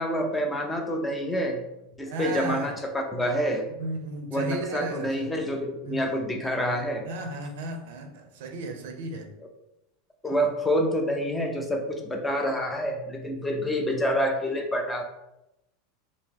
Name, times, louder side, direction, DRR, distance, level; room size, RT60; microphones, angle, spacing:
voice 1, 0.0-1.7 2.0-3.7 4.3-7.1 10.2-15.0, equal, 10° left, 2 dB, 0.4 m, -27 dB
voice 2, 2.1-2.8 3.8-5.3 5.8-6.2 7.0-9.3, right 2 dB, 65° right, 5 dB, 0.6 m, -34 dB
2.9 x 2.8 x 3.6 m, 0.88 s
supercardioid pair, 165°, 0 cm